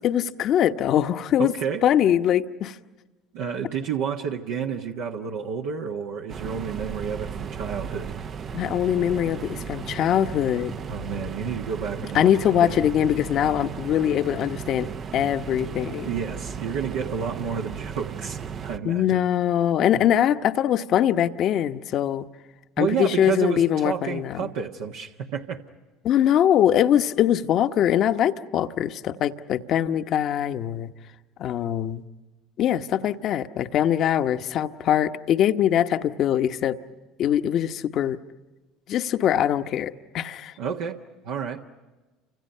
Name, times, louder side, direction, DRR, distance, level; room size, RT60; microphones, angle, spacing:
voice 1, 0.0-1.5 1.8-2.8 8.5-10.7 12.1-16.1 18.8-22.3 22.8-24.5 26.0-30.9 31.4-32.0 32.6-36.8 37.2-38.2 38.9-40.5, left 10 dB, 55° left, 10 dB, 1.1 m, -22 dB
voice 2, 1.4-1.8 3.3-8.1 10.9-12.8 16.1-19.2 19.9-20.1 22.8-25.6 40.6-41.0 41.2-41.7, right 7 dB, 75° right, 1 dB, 1.4 m, -30 dB
sound 1, 6.3-18.8, right 7 dB, 40° right, 0.7 m, -35 dB
29.5 x 26.5 x 5.6 m, 1.2 s
supercardioid pair, 85°, 0 cm